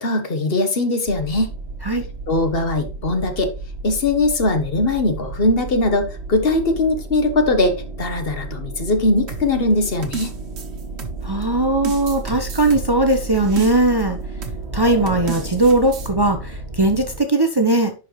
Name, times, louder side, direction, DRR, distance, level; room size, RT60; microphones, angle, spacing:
voice 1, 0.0-1.5 2.3-3.5 3.8-10.3, left 2 dB, 60° left, 1.4 m, -20 dB
sound 1, 1.0-17.2, right 3 dB, 65° right, 2.6 m, -32 dB
sound 2, 9.3-11.4 11.8-14.0 14.4-14.7 15.1-16.1, right 6 dB, 85° right, 1.3 m, -33 dB
voice 2, 11.2-14.2 14.7-17.9, right 2 dB, 25° right, 0.7 m, -19 dB
11.0 x 4.6 x 3.1 m
omnidirectional pair, 1.1 m